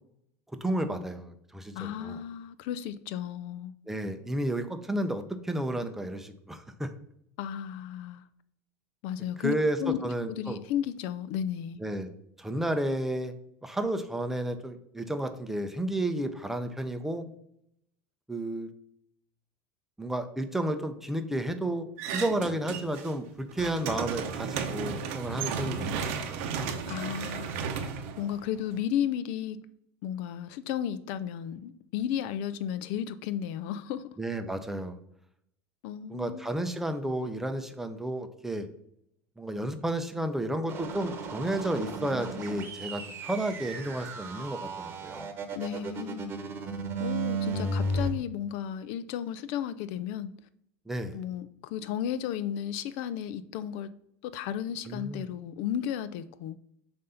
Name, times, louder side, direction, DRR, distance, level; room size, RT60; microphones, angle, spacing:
voice 1, 0.6-2.2 3.9-6.9 9.4-10.6 11.8-12.1 12.4-13.3 13.6-17.2 18.3-18.7 20.0-26.4 34.2-35.0 36.1-38.7 39.4-45.3 50.9-51.2 54.9-55.3, right 1 dB, 5° right, 0.6 m, -32 dB
voice 2, 1.7-3.7 7.4-8.2 9.0-9.5 9.8-10.0 10.3-11.8 26.9-27.7 28.2-29.6 30.0-34.1 35.8-36.5 45.5-46.3 47.0-50.3 51.1-53.9 54.2-56.6, left 10 dB, 65° left, 0.4 m, -34 dB
sound 1, 22.0-23.1 23.4-28.8, right 6 dB, 75° right, 0.8 m, -34 dB
dubstep bass, 40.7-48.1, right 2 dB, 35° right, 1.0 m, -34 dB
7.6 x 2.6 x 5.6 m
supercardioid pair, 140°, 7 cm